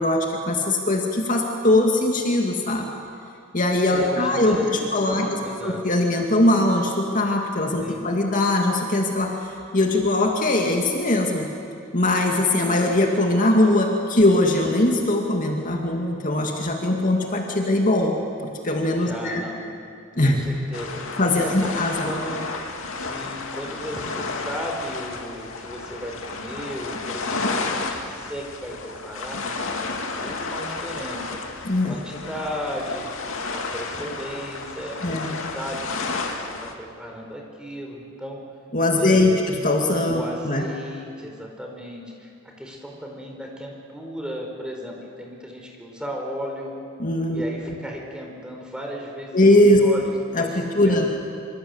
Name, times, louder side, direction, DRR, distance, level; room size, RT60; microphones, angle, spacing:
voice 1, 0.0-2.9 3.5-11.5 11.9-19.4 20.2-20.4 21.2-22.1 31.6-31.9 35.0-35.4 38.7-40.6 47.0-47.4 49.3-49.8 50.3-51.1, left 1 dB, 40° left, 1 dB, 2.3 m, -21 dB
voice 2, 3.9-5.9 7.8-8.1 19.0-19.6 20.2-21.5 22.0-22.4 23.0-31.4 31.8-33.1 33.5-38.4 38.9-39.4 40.1-42.3 42.6-46.7 47.3-49.4 49.7-51.1, equal, 5° right, 0 dB, 4.7 m, -35 dB
sound 1, 20.7-36.7, left 3 dB, 75° left, 2.4 m, -32 dB
26.0 x 26.0 x 8.0 m, 2.4 s
head